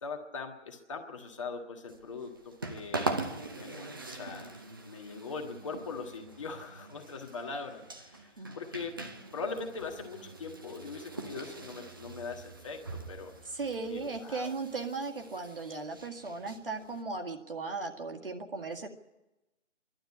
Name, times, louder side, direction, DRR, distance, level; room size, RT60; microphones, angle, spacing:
voice 1, 0.0-3.2 3.5-4.5 4.8-9.0 9.3-13.3 13.9-14.5, left 4 dB, 25° left, 3 dB, 1.7 m, -41 dB
sound 1, 1.9-17.0, right 3 dB, 20° right, 0.8 m, -42 dB
voice 2, 13.5-18.9, right 4 dB, 50° right, 4 dB, 2.0 m, -37 dB
26.5 x 12.0 x 9.8 m, 1.0 s
figure-of-eight pair, 155°, 35 cm